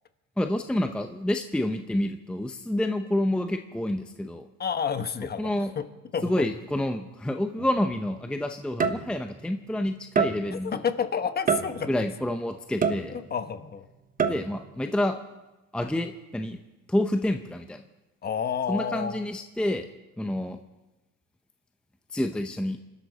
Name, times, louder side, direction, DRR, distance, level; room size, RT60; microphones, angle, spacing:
voice 1, 0.4-4.5 5.4-5.7 6.2-10.8 11.9-13.1 14.3-15.1 15.7-16.6 16.9-17.8 18.7-19.8 20.2-20.6 22.1-22.8, left 1 dB, 5° left, 6 dB, 0.7 m, -28 dB
voice 2, 4.6-5.8 6.1-6.5 10.5-12.1 13.1-13.9 14.2-14.3 18.2-19.2, left 7 dB, 25° left, 10 dB, 1.1 m, -30 dB
sound 1, 7.6-7.8 8.8-9.4 10.2-10.7 11.5-12.1 12.8-13.5 14.2-14.7, right 6 dB, 25° right, 1.1 m, -27 dB
27.5 x 12.5 x 4.1 m, 1.0 s
supercardioid pair, 120°, 35 cm